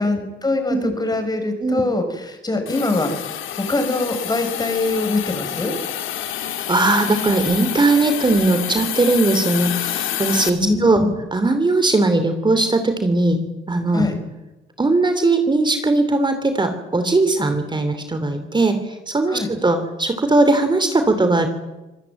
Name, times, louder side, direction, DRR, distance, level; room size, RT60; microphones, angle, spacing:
voice 1, 0.0-5.7 10.6-11.1 13.9-14.2 19.3-19.5, left 2 dB, 20° left, 6 dB, 7.3 m, -23 dB
Hiss, 2.7-10.5, left 11 dB, 80° left, 2.9 m, -28 dB
voice 2, 6.7-11.0 11.3-14.1 14.8-21.5, right 2 dB, 25° right, 8 dB, 3.1 m, -19 dB
26.0 x 19.5 x 9.1 m, 1.1 s
cardioid pair, 90°, 20 cm